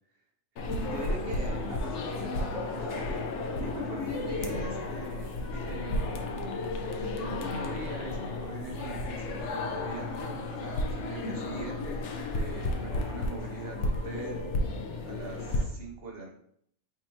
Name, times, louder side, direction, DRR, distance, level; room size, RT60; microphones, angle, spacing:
sound 1, 0.6-15.6, left 2 dB, 65° left, 0.9 m, -33 dB
voice 1, 0.8-6.4 6.8-14.4 15.0-16.3, right 1 dB, 55° right, -1 dB, 0.8 m, -42 dB
4.3 x 3.6 x 2.7 m, 0.70 s
omnidirectional pair, 1.4 m